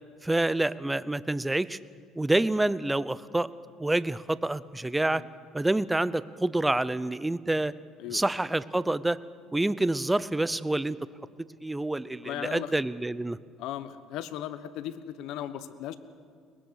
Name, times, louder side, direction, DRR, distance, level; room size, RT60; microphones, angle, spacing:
voice 1, 0.2-1.8 2.2-3.5 3.8-5.2 5.5-7.7 8.1-9.2 9.5-11.0 11.6-13.4, right 2 dB, 10° right, 17 dB, 0.6 m, -27 dB
voice 2, 12.2-12.7 13.6-15.9, left 11 dB, 75° left, 12 dB, 1.1 m, -37 dB
23.0 x 20.5 x 6.5 m, 2.2 s
cardioid pair, 110°, 0 cm